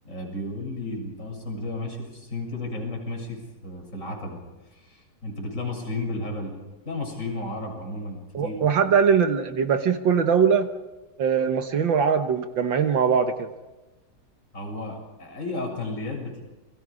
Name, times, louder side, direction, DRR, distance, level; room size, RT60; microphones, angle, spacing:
voice 1, 0.0-4.4 4.7-6.5 6.8-8.6 14.5-16.4, left 2 dB, 35° left, 0 dB, 7.5 m, -33 dB
voice 2, 8.3-10.7 11.2-13.5, right 6 dB, 65° right, 7 dB, 1.9 m, -21 dB
29.5 x 23.0 x 5.0 m, 1.1 s
omnidirectional pair, 2.2 m